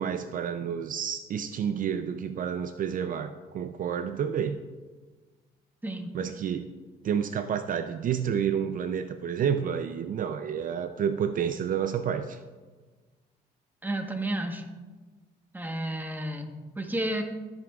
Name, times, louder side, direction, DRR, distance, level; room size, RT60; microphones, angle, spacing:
voice 1, 0.0-4.6 6.1-6.7 7.0-12.4, right 8 dB, 55° right, 9 dB, 0.5 m, -29 dB
voice 2, 5.8-6.2 13.8-14.6 15.5-17.2, right 1 dB, 10° right, 4 dB, 1.2 m, -32 dB
16.0 x 7.7 x 2.4 m, 1.3 s
cardioid pair, 95°, 17 cm